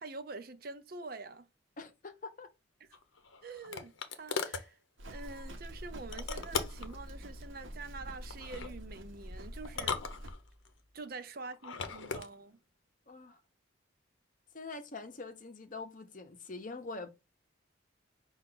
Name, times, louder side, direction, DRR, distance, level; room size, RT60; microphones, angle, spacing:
voice 1, 0.0-1.5 3.4-4.8 5.1-10.0 10.9-12.6, right 3 dB, 50° right, 0.5 m, -46 dB
voice 2, 1.8-2.5 13.1-13.4 14.5-17.1, left 3 dB, 40° left, 0.7 m, -44 dB
sound 1, 2.9-4.7 6.1-6.9 8.3-8.7 9.6-10.7 11.5-12.3, left 5 dB, 85° left, 0.7 m, -38 dB
Livestock farm animals working animals, 5.0-10.3, equal, 80° right, 0.8 m, -46 dB
sound 2, 5.1-11.0, equal, 5° right, 0.8 m, -53 dB
5.6 x 2.4 x 3.7 m
head